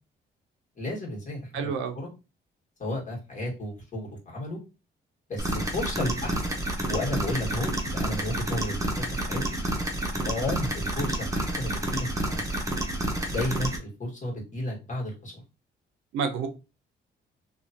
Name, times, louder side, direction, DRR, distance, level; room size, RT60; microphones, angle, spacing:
voice 1, 0.7-2.1 2.8-4.6 5.3-6.6 6.9-9.6 10.2-12.6 13.3-15.4, left 1 dB, 40° left, -3 dB, 1.6 m, -33 dB
voice 2, 1.5-2.0 16.1-16.5, right 6 dB, 90° right, 7 dB, 0.6 m, -29 dB
sound 1, 5.4-13.8, right 1 dB, 15° right, 0.8 m, -29 dB
2.9 x 2.3 x 2.8 m, 0.29 s
cardioid pair, 90°, 20 cm